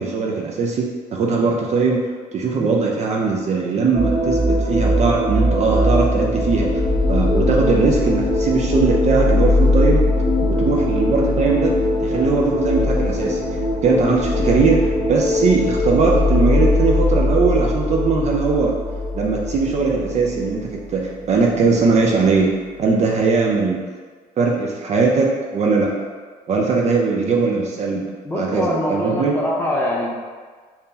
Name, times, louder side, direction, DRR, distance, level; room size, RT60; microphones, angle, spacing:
voice 1, 0.0-2.0 2.3-6.7 7.1-10.1 10.6-11.7 12.0-13.4 13.8-18.7 19.1-22.5 22.8-23.8 24.4-25.9 26.5-28.1 28.3-29.3, right 4 dB, 40° right, -1 dB, 0.5 m, -19 dB
sound 1, 3.9-21.5, left 1 dB, 25° right, 0.9 m, -20 dB
voice 2, 28.2-30.1, left 1 dB, 10° left, -4 dB, 0.7 m, -24 dB
2.8 x 2.7 x 3.7 m, 1.5 s
cardioid pair, 110°, 17 cm